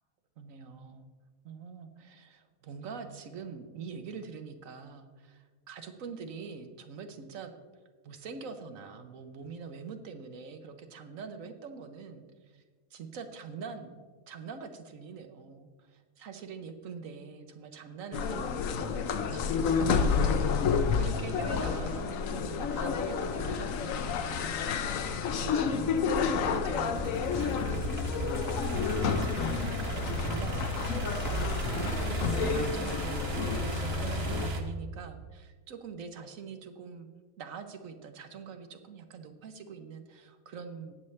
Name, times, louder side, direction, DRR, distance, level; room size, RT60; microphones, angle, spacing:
voice 1, 0.4-1.1 1.4-7.5 8.0-12.6 12.9-14.0 14.3-37.1 37.4-40.9, right 5 dB, 70° right, 7 dB, 1.2 m, -44 dB
sound 1, 18.1-34.5, left 5 dB, 70° left, 1.1 m, -30 dB
sound 2, 20.1-34.6, right 2 dB, 50° right, 1.2 m, -36 dB
18.5 x 7.0 x 3.2 m, 1.5 s
omnidirectional pair, 1.5 m